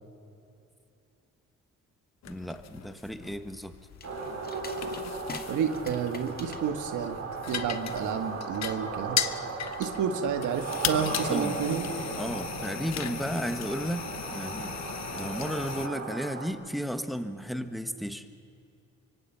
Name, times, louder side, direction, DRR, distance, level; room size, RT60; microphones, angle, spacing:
sound 1, 2.2-15.9, left 9 dB, 60° left, 1.1 m, -37 dB
voice 1, 2.3-3.7 11.3-11.6 12.2-14.7 15.1-18.3, equal, ahead, 9 dB, 1.5 m, -34 dB
sound 2, 3.9-13.0, left 3 dB, 30° left, 2.0 m, -48 dB
sound 3, 4.0-16.5, right 4 dB, 55° right, 5.1 m, -37 dB
voice 2, 5.5-7.2 7.5-9.2 9.8-11.9, right 7 dB, 80° right, 7 dB, 1.8 m, -30 dB
25.0 x 24.0 x 5.8 m, 2.7 s
cardioid pair, 90°, 30 cm